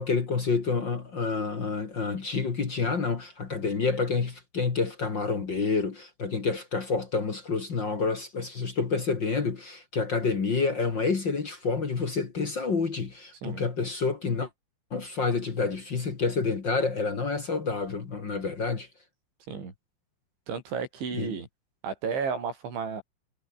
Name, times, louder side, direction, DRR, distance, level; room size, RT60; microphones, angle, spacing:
voice 1, 0.0-14.5 14.9-18.9 21.1-21.4, left 4 dB, 45° left, 1.4 m, -28 dB
voice 2, 20.5-21.5 21.8-23.0, right 5 dB, 65° right, 8.7 m, -32 dB
omnidirectional pair, 5.7 m